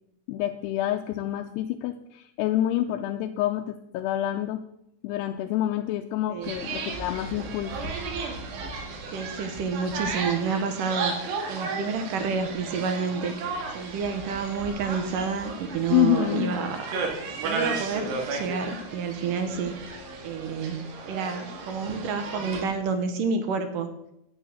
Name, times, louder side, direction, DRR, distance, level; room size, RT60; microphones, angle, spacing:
voice 1, 0.3-4.6 5.0-7.8 15.9-16.6, left 13 dB, 85° left, 5 dB, 2.7 m, -27 dB
sound 1, 6.4-22.6, right 4 dB, 85° right, 4.0 m, -34 dB
voice 2, 9.1-13.3 13.7-19.8 20.2-23.9, right 5 dB, 70° right, 8 dB, 2.1 m, -29 dB
10.0 x 9.0 x 6.5 m, 0.80 s
omnidirectional pair, 4.7 m